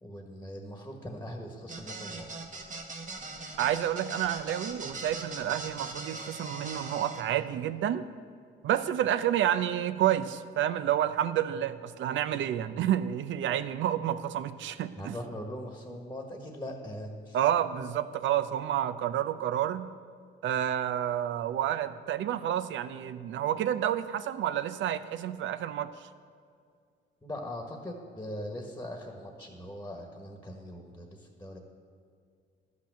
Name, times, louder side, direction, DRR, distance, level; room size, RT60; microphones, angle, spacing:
voice 1, 0.0-2.2 2.6-2.7 15.0-17.4 17.7-17.8 27.2-31.6, left 1 dB, 10° left, 2 dB, 1.5 m, -41 dB
sound 1, 1.7-7.2, right 3 dB, 40° right, 1.5 m, -40 dB
voice 2, 3.6-8.1 8.6-15.2 17.3-19.9 20.4-25.9, right 11 dB, 75° right, 13 dB, 0.6 m, -29 dB
11.5 x 5.9 x 7.4 m, 2.2 s
cardioid pair, 90°, 20 cm